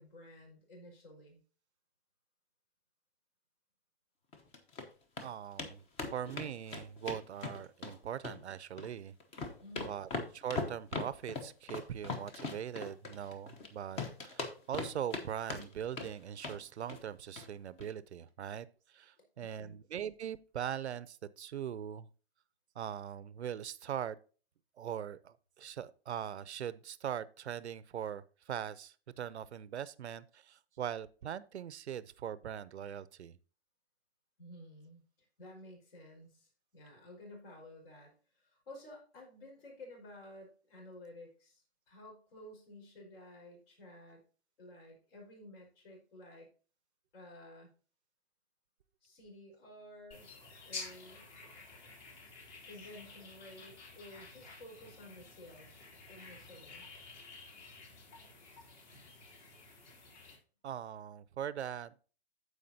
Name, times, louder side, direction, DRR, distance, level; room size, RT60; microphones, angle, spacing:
voice 1, 0.0-1.4 9.6-9.9 19.4-19.8 34.4-35.0 35.4-44.2 44.6-46.5 47.1-47.7 49.0-50.3 50.6-51.3 52.6-55.7 56.1-56.9, left 1 dB, 60° left, 4.9 m, -53 dB
sound 1, 4.3-4.8 5.2-5.3 5.6-5.7 6.0-7.9 8.2-8.9 9.2-13.7 14.0-15.2 15.5-16.1 16.4-16.6 16.9-17.1 17.4-17.5 17.8-17.9, left 3 dB, 20° left, 0.9 m, -39 dB
voice 2, 5.2-5.8 6.1-9.1 9.9-22.1 22.8-24.2 24.8-33.4 60.6-62.0, right 9 dB, 85° right, 0.7 m, -41 dB
sound 2, 50.1-60.4, left 4 dB, 40° left, 3.2 m, -51 dB
14.5 x 4.9 x 2.8 m
hypercardioid pair, 140°, 32 cm